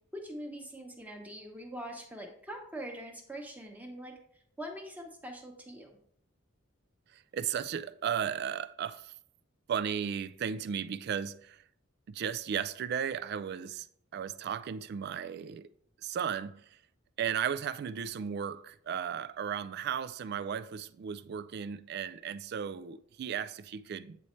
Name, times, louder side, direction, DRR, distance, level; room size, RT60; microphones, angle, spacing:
voice 1, 0.1-4.2 4.6-6.0, equal, 10° right, 1.0 m, -43 dB
voice 2, 7.1-9.1 9.7-11.6 12.1-13.9 14.1-15.7 16.0-16.6 17.2-24.2, right 8 dB, 55° right, 0.3 m, -35 dB
8.5 x 4.1 x 3.1 m
head